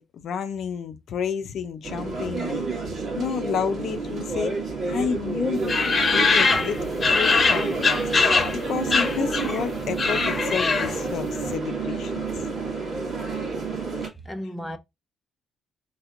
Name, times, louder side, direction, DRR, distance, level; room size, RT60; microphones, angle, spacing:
voice 1, 0.0-2.7 3.2-4.6 4.9-12.2, left 7 dB, 70° left, 0.6 m, -30 dB
sound 1, 1.8-14.1, right 4 dB, 60° right, 1.8 m, -29 dB
sound 2, 5.7-8.6 8.9-9.6 9.9-11.1, left 4 dB, 35° left, 1.2 m, -22 dB
voice 2, 14.0-14.8, equal, 5° left, 0.7 m, -35 dB
4.3 x 3.3 x 2.6 m
cardioid pair, 90°, 0 cm